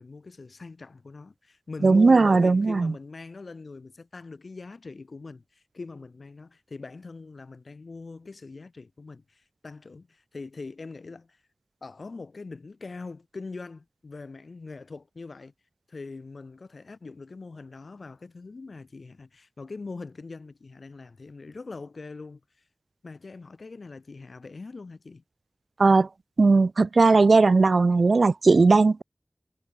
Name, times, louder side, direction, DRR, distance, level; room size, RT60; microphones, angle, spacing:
voice 1, 0.0-11.4 11.8-15.5 15.9-22.4 23.0-25.2, left 3 dB, 85° left, 3.1 m, -42 dB
voice 2, 1.8-2.9 25.8-26.1 26.4-29.0, right 3 dB, 85° right, 0.5 m, -18 dB
wide cardioid pair, 45°, 0 cm